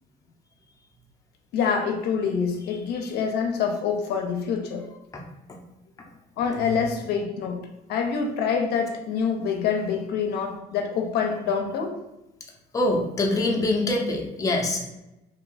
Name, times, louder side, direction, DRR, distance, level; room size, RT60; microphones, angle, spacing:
voice 1, 1.5-4.8 6.4-7.6 7.9-11.9, left 6 dB, 75° left, 3 dB, 0.5 m, -26 dB
voice 2, 12.7-14.9, left 2 dB, 20° left, 0 dB, 0.5 m, -24 dB
2.7 x 2.3 x 3.9 m, 0.94 s
cardioid pair, 110°, 17 cm